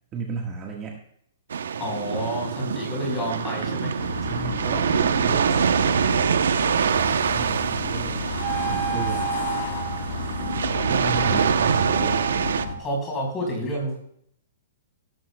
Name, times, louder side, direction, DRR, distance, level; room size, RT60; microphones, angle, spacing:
voice 1, 0.1-1.0 4.2-6.2 7.3-8.3 8.7-9.3 10.9-11.9, right 4 dB, 20° right, 0 dB, 1.5 m, -33 dB
sound 1, 1.5-12.7, right 7 dB, 90° right, 0.7 m, -25 dB
voice 2, 1.8-3.9 8.7-8.8 11.3-11.4 11.7-12.2 12.8-14.0, equal, 15° left, -1 dB, 4.4 m, -29 dB
sound 2, 4.0-12.8, left 5 dB, 60° left, 2.7 m, -32 dB
Wind instrument woodwind instrument, 8.4-12.9, right 9 dB, 50° right, 2.0 m, -31 dB
17.0 x 12.5 x 2.2 m, 0.68 s
hypercardioid pair, 165°, 0 cm